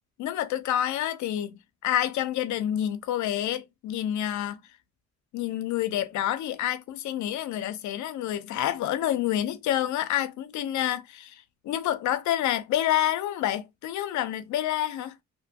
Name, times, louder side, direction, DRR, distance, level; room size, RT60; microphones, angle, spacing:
voice 1, 0.2-4.6 5.3-15.1, left 12 dB, 75° left, 0.5 m, -28 dB
2.7 x 2.2 x 2.7 m
cardioid pair, 90°, 30 cm